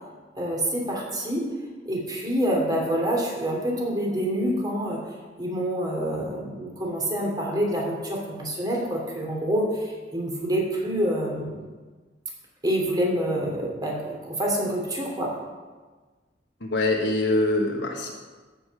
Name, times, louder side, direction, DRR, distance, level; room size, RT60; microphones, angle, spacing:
voice 1, 0.4-1.5 1.8-5.0 5.4-11.7 12.6-15.3, equal, 25° right, -2 dB, 2.9 m, -27 dB
voice 2, 16.6-18.1, left 2 dB, 70° left, -1 dB, 1.4 m, -24 dB
15.0 x 5.7 x 6.6 m, 1.4 s
head